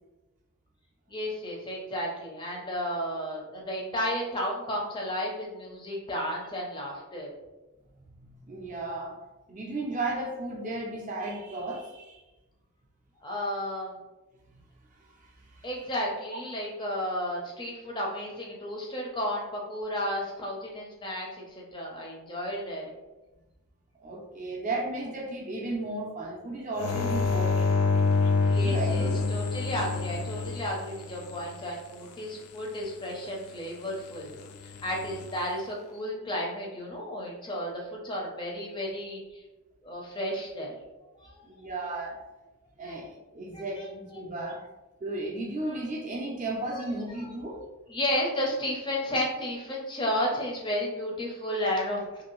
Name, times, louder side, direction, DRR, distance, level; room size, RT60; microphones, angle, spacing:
voice 1, 1.1-7.3 13.2-14.0 15.6-22.9 28.5-34.4 34.6-39.4 39.8-40.7 41.1-41.9 42.8-43.0 43.5-44.3 45.7-45.8 46.7-47.3 47.9-52.2, equal, 20° left, -2 dB, 0.5 m, -33 dB
voice 2, 8.1-9.2 9.5-12.2 15.2-15.7 24.0-27.8 28.4-29.3 41.4-42.2 42.8-44.6 45.0-47.6, right 2 dB, 35° right, -1 dB, 0.5 m, -34 dB
sound 1, 26.8-31.4 34.7-35.2, left 4 dB, 85° left, 0.4 m, -27 dB
2.6 x 2.6 x 2.9 m, 1.1 s
head